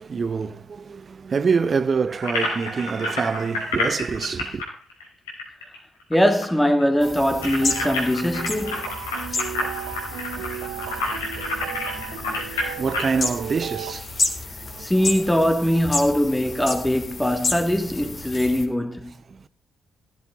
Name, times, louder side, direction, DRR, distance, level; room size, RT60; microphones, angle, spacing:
voice 1, 0.0-4.6 12.2-14.2 14.6-15.1 19.3-19.5, right 5 dB, 40° right, 0.9 m, -26 dB
sound 1, 2.2-6.2 6.4-6.5 6.8-13.2, left 2 dB, 80° left, 4.4 m, -29 dB
voice 2, 6.1-8.9 14.8-19.2, equal, 10° left, 2.4 m, -21 dB
sound 2, 7.0-18.6, left 3 dB, 40° left, 3.5 m, -31 dB
sound 3, 7.0-13.9, right 13 dB, 70° right, 0.7 m, -36 dB
16.0 x 14.0 x 4.1 m
figure-of-eight pair, 40°, 0 cm